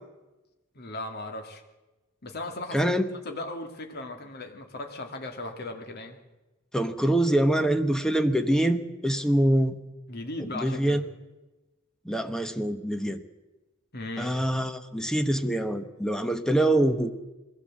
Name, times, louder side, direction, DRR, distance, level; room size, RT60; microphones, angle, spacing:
voice 1, 0.8-1.6 2.2-6.2 10.1-11.0 13.9-14.4, left 2 dB, 50° left, 4 dB, 2.3 m, -37 dB
voice 2, 2.7-3.1 6.7-9.8 10.5-11.0 12.0-13.2 14.2-17.1, right 1 dB, 5° left, 8 dB, 1.1 m, -24 dB
22.0 x 16.0 x 7.6 m, 1.1 s
head